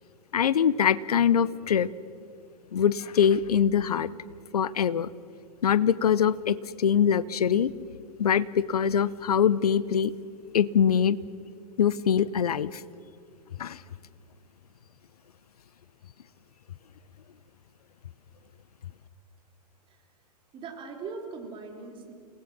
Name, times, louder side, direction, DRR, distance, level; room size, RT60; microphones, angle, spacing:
voice 1, 0.3-1.9 2.7-4.1 4.5-5.1 5.6-7.7 8.2-10.1 10.5-11.2 11.8-12.8 13.6-13.8, left 8 dB, 65° left, 19 dB, 0.9 m, -23 dB
voice 2, 20.5-22.1, right 4 dB, 25° right, 2 dB, 3.7 m, -40 dB
29.0 x 19.0 x 6.2 m, 2.4 s
figure-of-eight pair, 110°, 21 cm